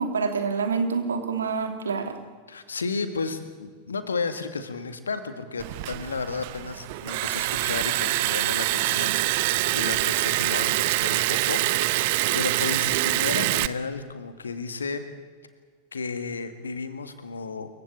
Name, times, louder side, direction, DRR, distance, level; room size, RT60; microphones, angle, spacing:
voice 1, 0.0-2.2, right 5 dB, 70° right, 6 dB, 2.8 m, -27 dB
voice 2, 2.5-11.6 11.9-15.0 15.9-17.7, left 4 dB, 75° left, 10 dB, 2.0 m, -33 dB
Liquid, 5.6-13.7, right 18 dB, 50° right, 0.8 m, -25 dB
27.5 x 15.5 x 8.6 m, 1.5 s
figure-of-eight pair, 90°, 0 cm